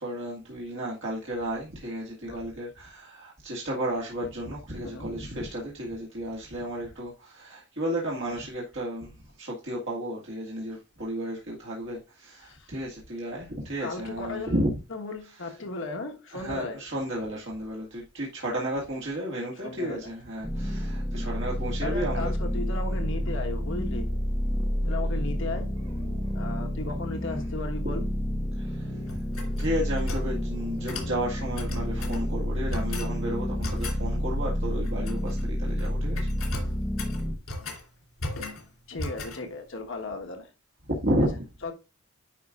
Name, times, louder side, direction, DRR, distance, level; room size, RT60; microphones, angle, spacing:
voice 1, 0.0-14.7 15.9-16.0 16.3-22.3 26.1-26.3 27.8-28.0 28.6-28.9 29.6-36.3 40.9-41.4, right 1 dB, 65° right, 2.0 m, -33 dB
voice 2, 2.0-2.4 4.9-5.1 12.3-12.7 13.2-13.3 13.8-16.8 19.6-20.2 21.8-24.1 24.8-25.8 26.3-28.1 38.9-40.5 41.2-41.7, left 3 dB, 65° left, 1.4 m, -36 dB
sound 1, 20.4-37.3, equal, 5° right, 1.0 m, -29 dB
sound 2, 29.1-30.3 30.9-31.1 31.5-32.2 32.7-33.1 33.6-34.0 34.8-35.4 35.7-35.9 36.1-37.8 38.2-38.6 39.0-39.4, left 2 dB, 85° left, 3.1 m, -37 dB
10.0 x 5.3 x 2.4 m
head